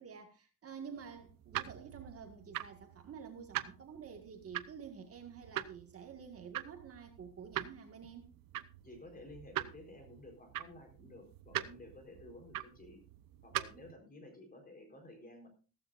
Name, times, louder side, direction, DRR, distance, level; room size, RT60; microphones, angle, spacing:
voice 1, 0.0-8.3, right 6 dB, 40° right, 4 dB, 1.8 m, -49 dB
sound 1, 1.0-13.9, right 14 dB, 65° right, 0.8 m, -44 dB
voice 2, 8.8-13.0 13.4-15.5, left 1 dB, 25° left, 4 dB, 4.2 m, -53 dB
15.0 x 14.5 x 2.5 m, 0.34 s
cardioid pair, 150°, 36 cm